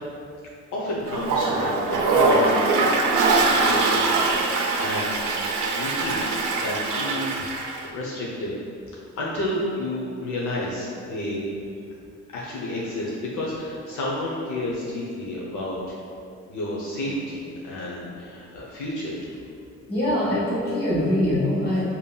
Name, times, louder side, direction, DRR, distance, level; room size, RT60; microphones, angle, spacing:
voice 1, 0.7-2.6 3.3-5.1 5.7-8.6 9.2-11.5 12.3-16.0 16.5-19.4, left 1 dB, 80° left, -5 dB, 0.7 m, -31 dB
Toilet flush, 1.1-7.8, right 3 dB, 90° right, 0.5 m, -22 dB
voice 2, 19.9-21.8, left 1 dB, 30° left, -9 dB, 1.4 m, -23 dB
5.2 x 2.8 x 2.3 m, 2.4 s
cardioid pair, 140°, 30 cm